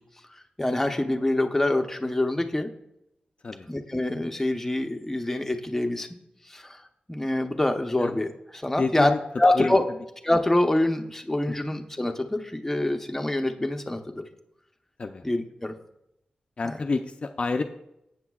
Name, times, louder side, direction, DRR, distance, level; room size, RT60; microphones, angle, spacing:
voice 1, 0.3-2.7 3.7-6.1 6.5-6.8 7.1-9.1 9.4-9.9 10.2-14.2 15.2-15.7 16.6-16.7, left 1 dB, 10° left, 4 dB, 0.8 m, -25 dB
voice 2, 8.8-9.2 9.5-9.7 11.5-11.8 15.0-15.2 16.6-17.6, left 3 dB, 45° left, 5 dB, 0.5 m, -29 dB
14.5 x 8.1 x 2.4 m, 0.81 s
wide cardioid pair, 120°, 3 cm